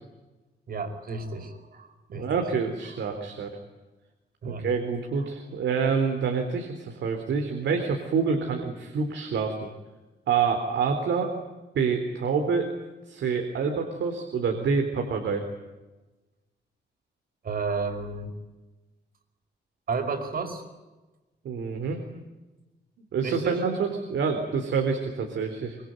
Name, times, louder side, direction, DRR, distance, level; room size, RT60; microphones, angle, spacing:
voice 1, 0.7-2.3 4.4-4.7 17.4-18.3 19.9-20.6 23.2-23.6, right 4 dB, 50° right, 6 dB, 5.1 m, -32 dB
voice 2, 2.1-3.5 4.4-9.7 10.3-11.3 11.7-12.7 13.1-15.4 21.4-22.0 23.1-25.8, right 5 dB, 85° right, 4 dB, 3.7 m, -27 dB
25.0 x 23.5 x 9.3 m, 1.1 s
wide cardioid pair, 160°, 19 cm